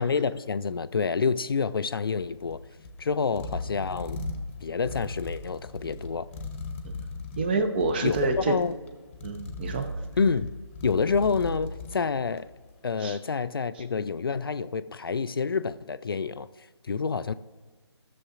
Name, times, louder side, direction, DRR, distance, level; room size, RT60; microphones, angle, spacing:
voice 1, 0.0-2.6 3.0-4.2 4.6-6.3 8.0-8.2 8.5-8.8 10.2-10.5 10.8-12.5 12.8-16.5 16.8-17.3, left 5 dB, 55° left, 13 dB, 0.4 m, -28 dB
sound 1, 2.2-12.6, left 2 dB, 25° left, 0.9 m, -38 dB
voice 2, 7.4-8.6 9.2-9.9 13.0-13.2, right 3 dB, 20° right, 8 dB, 0.6 m, -27 dB
17.5 x 6.8 x 2.5 m, 1.4 s
figure-of-eight pair, 145°, 15 cm